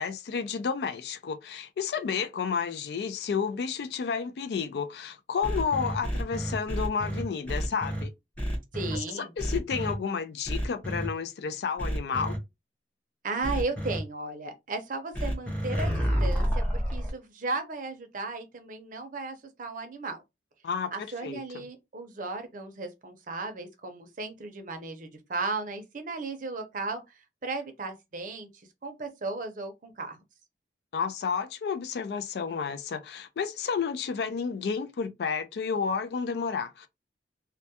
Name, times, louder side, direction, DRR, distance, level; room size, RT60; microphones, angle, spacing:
voice 1, 0.0-8.1 8.9-12.4 20.6-21.6 30.9-36.9, left 6 dB, 65° left, 0.3 m, -31 dB
sound 1, 5.4-8.0 8.4-9.0 9.4-9.9 10.4-11.1 11.8-12.4 13.4-14.0 15.1-17.1, equal, 10° left, 0.6 m, -29 dB
voice 2, 8.7-9.3 13.2-20.2 20.9-28.5 28.8-30.2, right 3 dB, 50° right, 0.6 m, -35 dB
2.2 x 2.1 x 2.8 m
head